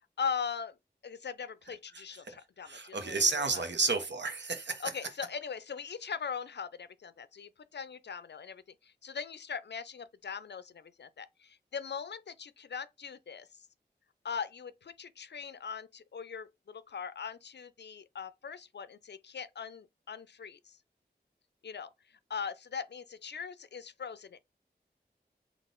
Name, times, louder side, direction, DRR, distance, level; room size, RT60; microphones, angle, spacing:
voice 1, 0.2-0.8 1.0-3.6 4.8-13.5 14.2-20.8 21.6-21.9 22.3-24.4, left 6 dB, 70° left, 0.4 m, -40 dB
voice 2, 2.6-4.9, right 3 dB, 80° right, 0.9 m, -31 dB
4.0 x 2.4 x 3.7 m
wide cardioid pair, 40°, 18 cm